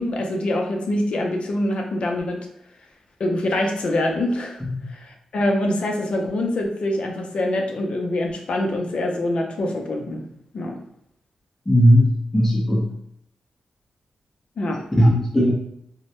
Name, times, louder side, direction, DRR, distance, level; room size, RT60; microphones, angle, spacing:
voice 1, 0.0-2.5 3.2-4.6 4.9-10.3 10.5-10.8 14.6-14.8, left 1 dB, 65° left, 1 dB, 0.5 m, -24 dB
voice 2, 11.7-12.9 15.0-15.5, equal, 15° left, -4 dB, 0.7 m, -17 dB
2.1 x 2.0 x 2.8 m, 0.73 s
cardioid pair, 70°, 2 cm